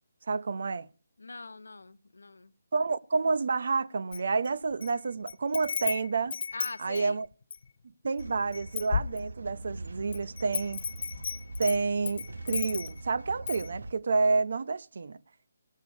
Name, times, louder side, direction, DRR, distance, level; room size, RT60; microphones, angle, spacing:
voice 1, 0.3-0.9 2.7-6.4 6.8-7.3 8.0-10.8 11.6-15.2, right 4 dB, 65° right, 0.7 m, -29 dB
voice 2, 1.2-2.5 6.5-7.2, left 3 dB, 90° left, 0.9 m, -42 dB
Wind chime, 4.1-4.9 5.3-7.7 8.2-8.3 8.5-9.6 10.1-13.1 13.5-13.7, left 5 dB, 55° left, 0.6 m, -34 dB
sound 1, 8.2-13.9, right 2 dB, 85° right, 1.0 m, -42 dB
18.0 x 6.6 x 5.2 m
hypercardioid pair, 160°, 0 cm